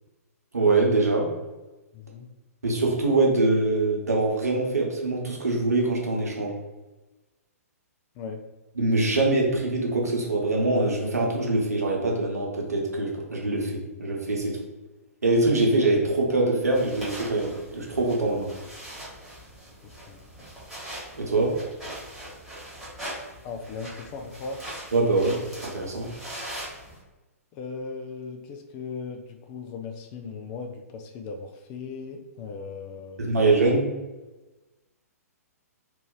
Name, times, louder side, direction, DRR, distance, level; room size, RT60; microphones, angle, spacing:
voice 1, 0.5-1.3 2.6-6.5 8.8-14.6 15.2-18.5 21.1-21.6 24.9-26.1 33.2-33.9, right 2 dB, 75° right, -2 dB, 1.1 m, -23 dB
voice 2, 1.9-2.3 8.2-8.4 19.8-20.2 23.4-24.6 27.5-33.5, left 4 dB, 25° left, 5 dB, 0.3 m, -38 dB
sound 1, 16.7-27.0, right 1 dB, 5° right, 1.4 m, -41 dB
2.8 x 2.5 x 3.9 m, 1.1 s
figure-of-eight pair, 120°, 9 cm